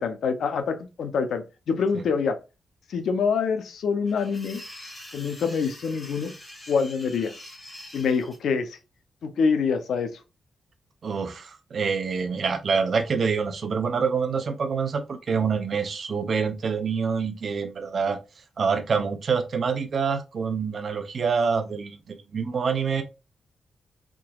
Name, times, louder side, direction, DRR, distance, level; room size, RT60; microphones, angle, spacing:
voice 1, 0.0-2.4 2.9-4.6 5.1-6.3 6.7-7.3 7.9-8.8 9.2-10.1, left 5 dB, 85° left, 0.6 m, -25 dB
sound 1, 4.1-8.4, left 1 dB, 20° left, 1.4 m, -44 dB
voice 2, 11.0-18.2 18.6-23.0, right 5 dB, 50° right, 0.6 m, -26 dB
3.6 x 2.9 x 2.3 m
wide cardioid pair, 125°, 0 cm